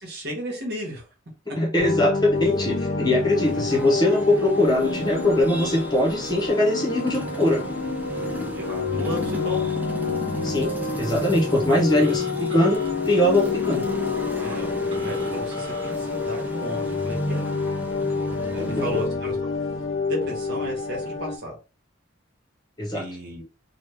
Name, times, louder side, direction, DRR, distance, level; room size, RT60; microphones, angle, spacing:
voice 1, 0.0-1.0 8.5-9.7 12.0-12.7 14.4-17.4 18.5-19.5 20.1-21.6 22.9-23.4, equal, 55° right, 1.4 m, -34 dB
voice 2, 1.6-7.6 10.4-13.9 18.6-18.8 22.8-23.0, left 1 dB, 20° left, 0.9 m, -22 dB
sound 1, 1.8-21.4, left 4 dB, 80° left, 0.6 m, -28 dB
sound 2, 3.4-19.1, right 1 dB, 10° right, 0.4 m, -36 dB
Telephone, 11.9-12.9 14.9-15.9, equal, 25° right, 1.3 m, -40 dB
3.1 x 2.3 x 3.4 m
head